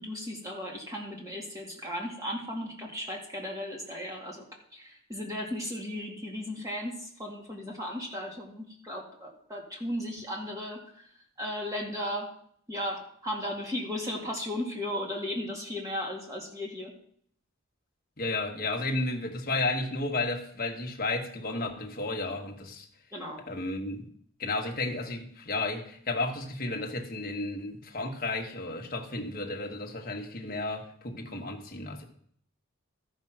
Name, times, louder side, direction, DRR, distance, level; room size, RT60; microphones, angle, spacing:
voice 1, 0.0-4.5 4.7-11.1 11.4-12.3 12.7-16.9 23.1-23.4, left 1 dB, 15° right, -1 dB, 2.1 m, -36 dB
voice 2, 18.2-22.9 23.5-24.1 24.4-32.1, left 2 dB, 45° left, 2 dB, 1.4 m, -33 dB
13.5 x 5.5 x 5.9 m, 0.63 s
head